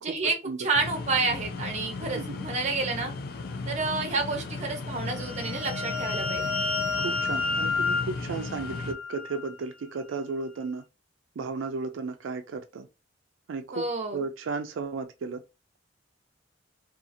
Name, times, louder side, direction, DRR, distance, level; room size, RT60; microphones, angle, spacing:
voice 1, 0.0-3.1 3.7-6.5 13.7-14.2, right 3 dB, 40° right, 0.7 m, -29 dB
sound 1, 0.7-8.9, left 3 dB, 55° left, 0.4 m, -36 dB
sound 2, 5.0-9.5, left 4 dB, 5° left, 0.7 m, -30 dB
voice 2, 7.0-10.8 11.4-12.9 13.5-15.4, right 4 dB, 90° right, 0.4 m, -34 dB
2.7 x 2.4 x 2.5 m
head